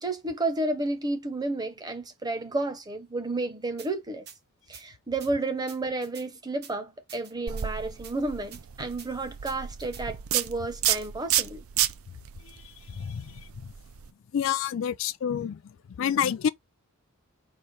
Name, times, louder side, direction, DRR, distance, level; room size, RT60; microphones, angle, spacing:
voice 1, 0.0-4.3 4.7-11.6, right 2 dB, 20° right, 0.8 m, -31 dB
sound 1, 3.8-3.9 4.3-4.4 4.7-4.8 5.2-5.3 5.7-6.3 6.6-6.7 7.1-7.7 8.0-8.1 8.5-8.6 9.0-9.1 9.4-10.0 10.4-10.5 10.9-11.1, right 8 dB, 50° right, 0.9 m, -47 dB
sound 2, 7.5-14.1, right 11 dB, 70° right, 0.5 m, -31 dB
voice 2, 12.9-13.3 14.3-15.6 16.0-16.5, left 8 dB, 60° left, 0.3 m, -27 dB
4.3 x 2.5 x 4.7 m
head